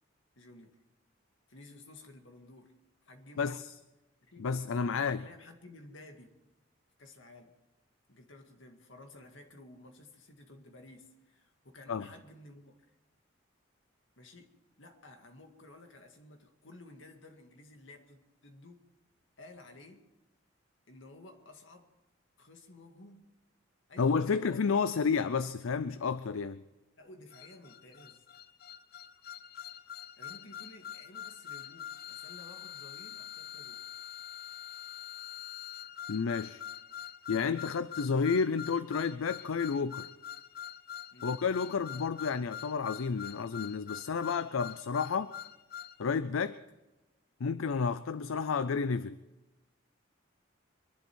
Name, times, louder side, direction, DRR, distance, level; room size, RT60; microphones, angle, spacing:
voice 1, 0.4-0.8 1.5-2.7 3.0-3.5 4.2-4.5 4.9-6.3 7.0-7.5 8.1-12.9 14.2-18.8 19.4-20.1 20.9-21.9 22.4-23.3 23.9-24.6 27.0-28.3 30.2-33.9 41.1-41.4, left 2 dB, 70° left, 4 dB, 2.0 m, -54 dB
voice 2, 4.4-5.2 11.9-12.1 24.0-26.6 36.1-36.6 37.3-40.1 41.2-45.3 46.0-46.6 47.4-49.2, left 5 dB, 85° left, 13 dB, 0.5 m, -31 dB
sound 1, 27.3-46.0, left 9 dB, 50° left, 0.7 m, -45 dB
24.0 x 11.5 x 4.6 m, 1.0 s
head